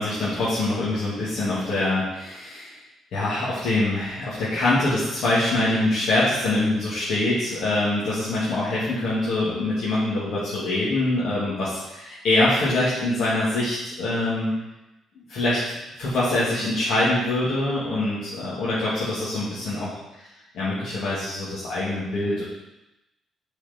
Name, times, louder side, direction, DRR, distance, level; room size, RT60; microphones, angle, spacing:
voice 1, 0.0-2.7 3.1-14.5 15.3-20.0 20.5-22.4, left 2 dB, 75° left, -10 dB, 2.3 m, -24 dB
6.6 x 4.9 x 4.3 m, 0.94 s
cardioid pair, 90°, 0 cm